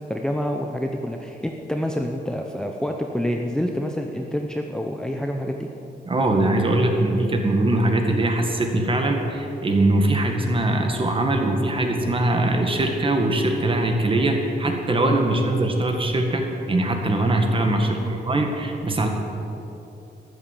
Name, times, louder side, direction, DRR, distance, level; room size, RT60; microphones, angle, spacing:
voice 1, 0.1-5.7 17.8-18.1, equal, 5° left, 2 dB, 0.7 m, -27 dB
voice 2, 6.1-19.1, right 1 dB, 30° right, 3 dB, 1.8 m, -21 dB
13.5 x 12.0 x 7.7 m, 2.9 s
wide cardioid pair, 155°, 18 cm